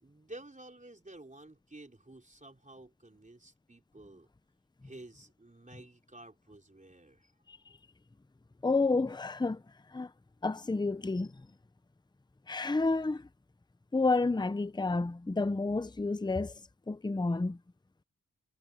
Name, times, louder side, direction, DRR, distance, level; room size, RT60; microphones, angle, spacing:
voice 1, 0.0-4.3 4.8-7.3, right 2 dB, 20° right, 4.1 m, -51 dB
voice 2, 8.6-9.6 9.9-10.1 10.4-11.5 12.5-13.3 13.9-16.5 16.9-17.6, left 3 dB, 15° left, 0.6 m, -30 dB
wide cardioid pair, 100°, 34 cm